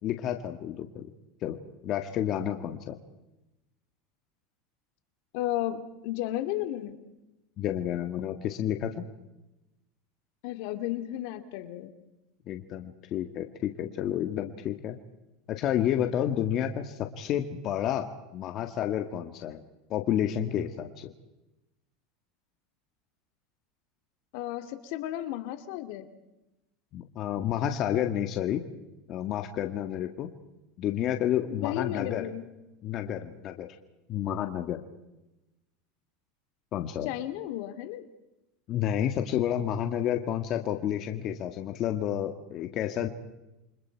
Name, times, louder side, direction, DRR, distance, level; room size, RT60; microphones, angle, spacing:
voice 1, 0.0-1.1 1.4-1.6 1.8-3.0 7.6-8.9 12.5-15.0 15.5-19.6 19.9-21.1 26.9-28.6 29.1-30.3 30.8-32.2 32.8-33.7 34.1-34.8 36.7-37.1 38.7-43.1, left 10 dB, 40° left, 6 dB, 1.8 m, -30 dB
voice 2, 5.3-7.0 10.4-11.9 24.3-26.1 27.4-28.1 31.5-32.4 37.0-38.1, left 13 dB, 65° left, 9 dB, 2.4 m, -34 dB
29.0 x 25.5 x 4.7 m, 0.96 s
supercardioid pair, 145°, 0 cm